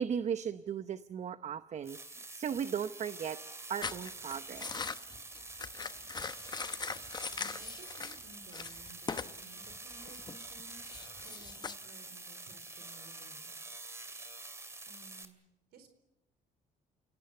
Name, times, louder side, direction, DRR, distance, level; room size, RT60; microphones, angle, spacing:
voice 1, 0.0-3.4 3.7-4.7, right 8 dB, 45° right, 12 dB, 0.8 m, -36 dB
sound 1, 1.8-15.2, right 2 dB, 15° right, 2.5 m, -47 dB
sound 2, 3.8-8.2 8.5-9.4 9.6-11.7, left 5 dB, 25° left, 0.9 m, -41 dB
voice 2, 7.3-13.6 14.9-15.4 15.7-15.9, right 4 dB, 70° right, 8 dB, 4.3 m, -57 dB
29.5 x 18.0 x 8.1 m, 0.95 s
cardioid pair, 110°, 17 cm